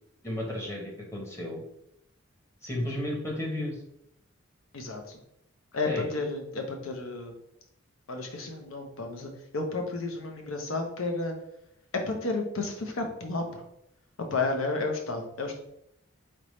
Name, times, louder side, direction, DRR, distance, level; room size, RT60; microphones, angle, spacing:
voice 1, 0.2-1.6 2.6-3.8 5.8-6.2, left 1 dB, 15° left, 0 dB, 0.8 m, -33 dB
voice 2, 4.7-5.2 5.7-7.3 8.1-11.3 11.9-13.6 14.2-15.6, left 3 dB, 85° left, 4 dB, 0.8 m, -32 dB
4.0 x 3.5 x 3.1 m, 0.77 s
head